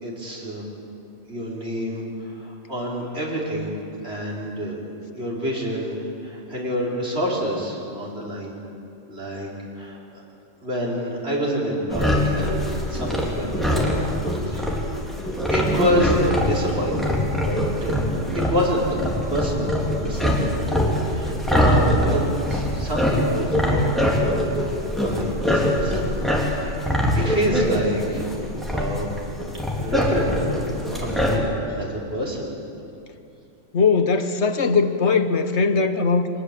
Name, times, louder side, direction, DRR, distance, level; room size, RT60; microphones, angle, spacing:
voice 1, 0.0-0.6 1.3-3.8 4.0-4.8 5.1-6.0 6.2-8.5 9.1-10.2 10.6-13.9 14.5-14.8 15.5-18.1 18.3-18.9 19.3-20.6 21.0-26.0 26.3-29.1 29.7-30.5 30.9-31.4 31.8-32.5, equal, 60° right, -4 dB, 5.2 m, -28 dB
sound 1, 11.9-31.4, equal, ahead, 3.3 m, -23 dB
voice 2, 33.7-36.3, left 4 dB, 65° left, 8 dB, 1.5 m, -20 dB
23.5 x 20.0 x 8.4 m, 2.6 s
omnidirectional pair, 1.2 m